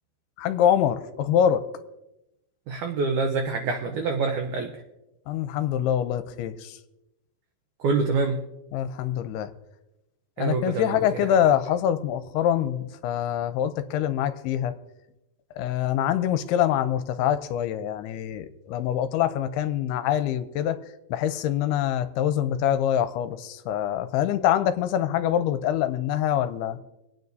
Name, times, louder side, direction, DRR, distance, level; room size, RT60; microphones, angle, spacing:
voice 1, 0.4-1.6 5.3-6.8 8.7-9.5 10.4-14.7 15.6-20.8 21.1-26.8, left 10 dB, 85° left, 11 dB, 2.6 m, -25 dB
voice 2, 2.7-4.7 7.8-8.4 10.4-11.0, right 4 dB, 80° right, 3 dB, 1.7 m, -26 dB
27.0 x 9.3 x 2.7 m, 0.92 s
omnidirectional pair, 4.7 m